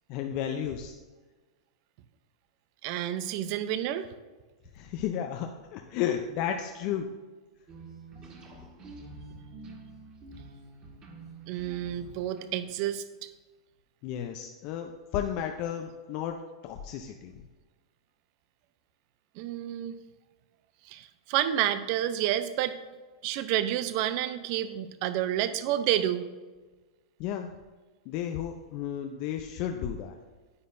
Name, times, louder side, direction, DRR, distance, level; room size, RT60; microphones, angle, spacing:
voice 1, 0.1-1.0 4.7-7.1 8.5-8.6 14.0-17.3 27.2-27.5 28.1-30.2, left 9 dB, 50° left, 4 dB, 0.6 m, -33 dB
voice 2, 2.8-4.1 11.5-13.3 19.4-20.0 20.9-22.8 23.2-26.2, right 12 dB, 50° right, 12 dB, 0.6 m, -29 dB
sound 1, 7.7-12.9, right 3 dB, 30° right, 1.8 m, -47 dB
9.5 x 8.3 x 2.7 m, 1.3 s
hypercardioid pair, 115°, 3 cm